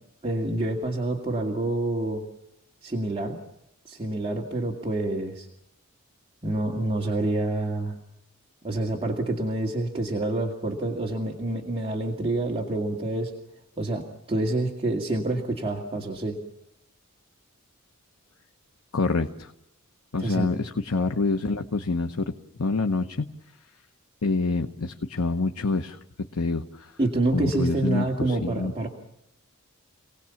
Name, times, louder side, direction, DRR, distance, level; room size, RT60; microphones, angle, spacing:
voice 1, 0.2-2.2 2.8-3.4 3.9-5.5 6.4-8.0 8.6-13.3 13.8-14.0 14.3-16.4 20.2-20.5 27.0-28.9, right 2 dB, 25° right, -2 dB, 2.3 m, -27 dB
voice 2, 18.9-19.5 20.1-22.3 22.6-23.3 24.2-26.0 26.3-26.9 27.3-28.7, left 3 dB, 85° left, 5 dB, 1.0 m, -26 dB
28.5 x 18.5 x 7.2 m, 0.82 s
head